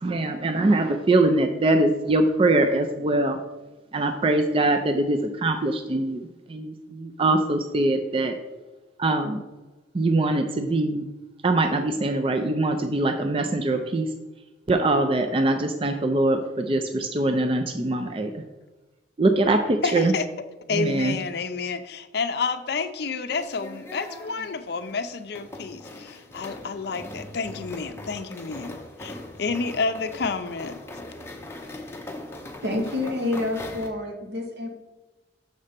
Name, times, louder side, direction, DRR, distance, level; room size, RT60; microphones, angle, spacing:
voice 1, 0.0-3.4 3.9-8.4 9.0-9.4 9.9-11.0 11.4-14.1 14.7-18.4 19.2-20.1 20.7-21.2, right 2 dB, 30° right, 6 dB, 0.4 m, -23 dB
voice 2, 19.8-20.2 20.7-30.8, left 4 dB, 60° left, 9 dB, 0.5 m, -30 dB
sound 1, 23.3-33.9, left 1 dB, 15° left, 0.7 m, -40 dB
voice 3, 32.6-34.7, left 2 dB, 60° right, 2 dB, 1.3 m, -28 dB
6.6 x 4.2 x 5.1 m, 1.2 s
head